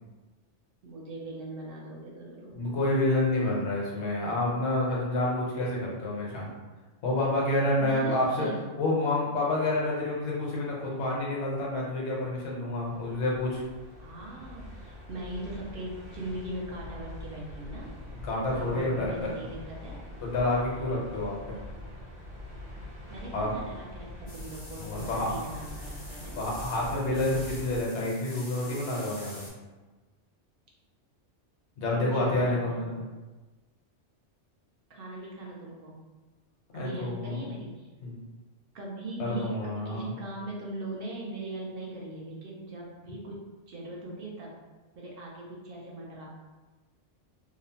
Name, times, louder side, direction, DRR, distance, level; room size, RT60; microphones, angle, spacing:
voice 1, 0.8-2.6 7.8-8.6 14.0-17.9 18.5-20.0 23.1-26.5 31.9-32.8 34.9-36.0 36.7-37.9 38.7-43.4 43.7-44.6 45.0-46.4, right 2 dB, 60° right, -3 dB, 0.7 m, -40 dB
voice 2, 2.5-6.5 7.0-8.5 8.8-13.6 18.2-19.2 20.2-21.5 23.3-23.5 24.8-25.3 26.4-29.5 31.8-33.0 36.7-37.4 38.0-38.2 39.2-40.1, left 2 dB, 70° left, -4 dB, 1.0 m, -28 dB
sound 1, 12.8-27.8, left 1 dB, 85° right, 1.1 m, -44 dB
sound 2, 24.3-29.5, left 1 dB, 40° left, 0.5 m, -46 dB
2.7 x 2.0 x 2.7 m, 1.2 s
omnidirectional pair, 1.2 m